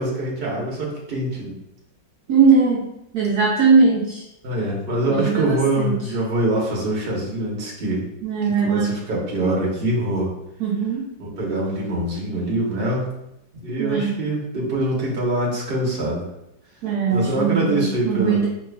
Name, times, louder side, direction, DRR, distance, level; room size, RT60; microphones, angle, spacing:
voice 1, 0.0-1.5 4.4-8.1 8.4-10.3 11.2-13.1 13.5-16.3 17.1-18.4, right 1 dB, 40° right, -3 dB, 1.0 m, -24 dB
voice 2, 2.3-2.8 3.1-4.2 5.1-5.9 8.2-8.9 10.6-11.0 13.8-14.2 16.8-18.5, right 5 dB, 70° right, -3 dB, 1.0 m, -19 dB
4.8 x 3.1 x 2.3 m, 0.84 s
omnidirectional pair, 2.0 m